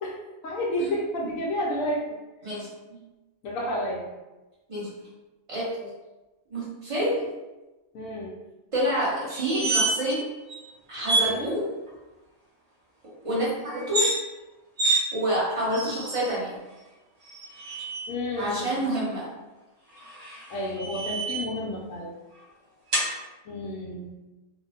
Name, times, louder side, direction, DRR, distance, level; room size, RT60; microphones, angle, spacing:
voice 1, 0.0-2.2 3.4-4.0 7.9-8.3 11.2-11.5 18.1-18.7 20.5-22.1 23.5-24.1, left 1 dB, 80° left, -3 dB, 1.0 m, -31 dB
voice 2, 2.4-3.0 4.7-5.1 5.5-5.9 6.5-7.3 8.7-10.1 10.9-11.6 13.2-14.1 15.1-16.6 18.4-19.3, equal, 25° right, -7 dB, 0.8 m, -28 dB
sound 1, 9.3-10.2 10.5-10.6 11.0-11.3 13.8-14.2 14.8-15.0 15.7-16.3 17.3-18.1 20.0-21.6 22.9-23.1, right 2 dB, 60° right, 0.4 m, -27 dB
3.0 x 2.1 x 2.7 m, 1.1 s
omnidirectional pair, 1.5 m